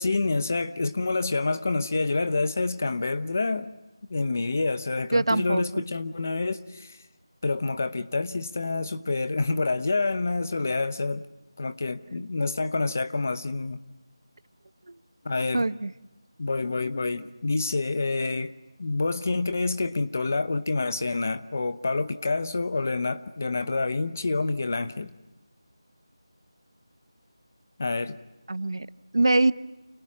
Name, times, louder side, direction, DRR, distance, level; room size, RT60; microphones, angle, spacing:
voice 1, 0.0-3.7 4.1-7.0 7.4-11.3 11.6-13.8 15.2-15.7 16.4-18.5 18.8-25.1 27.8-28.2, left 3 dB, 30° left, 0.8 m, -27 dB
voice 2, 5.1-5.8 15.5-15.9 28.5-28.9 29.1-29.5, right 2 dB, 55° right, 0.9 m, -23 dB
29.5 x 29.0 x 6.1 m
figure-of-eight pair, 180°, 3 cm